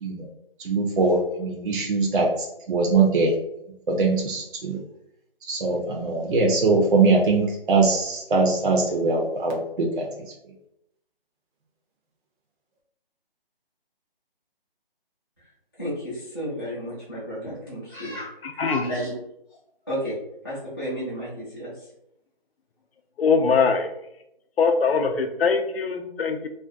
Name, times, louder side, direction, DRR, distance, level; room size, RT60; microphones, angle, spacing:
voice 1, 0.6-2.3 2.7-3.3 3.9-4.8 5.4-10.1, right 3 dB, 60° right, -1 dB, 0.5 m, -22 dB
voice 2, 15.8-18.3 18.7-19.2 19.9-20.1 20.4-21.7, equal, 25° left, -13 dB, 0.5 m, -32 dB
voice 3, 18.4-18.9 23.2-23.9 24.6-26.5, left 5 dB, 80° left, 6 dB, 0.5 m, -22 dB
2.4 x 2.2 x 2.4 m, 0.79 s
hypercardioid pair, 170°, 30 cm